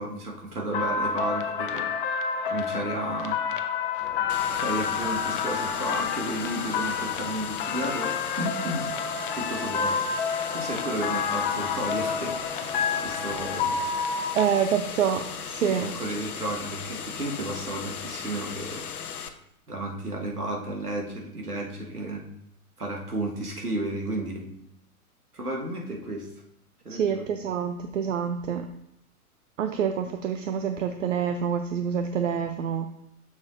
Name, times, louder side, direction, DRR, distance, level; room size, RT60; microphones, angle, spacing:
voice 1, 0.0-1.9 2.5-3.4 4.5-8.9 9.3-10.0 10.5-13.8 15.6-18.9 19.7-22.2 22.8-24.5 25.3-26.3 26.9-27.3, right 1 dB, 80° right, 0 dB, 1.6 m, -33 dB
sound 1, 0.7-14.4, left 6 dB, 35° left, 0.5 m, -29 dB
sound 2, 4.0-9.9 10.3-13.9, left 1 dB, ahead, 1.1 m, -47 dB
sound 3, 4.3-19.3, left 7 dB, 75° left, 0.7 m, -37 dB
voice 2, 14.3-15.9 26.9-28.7 29.6-32.9, right 8 dB, 55° right, 7 dB, 0.6 m, -27 dB
7.1 x 6.4 x 2.5 m, 0.77 s
figure-of-eight pair, 105°, 45 cm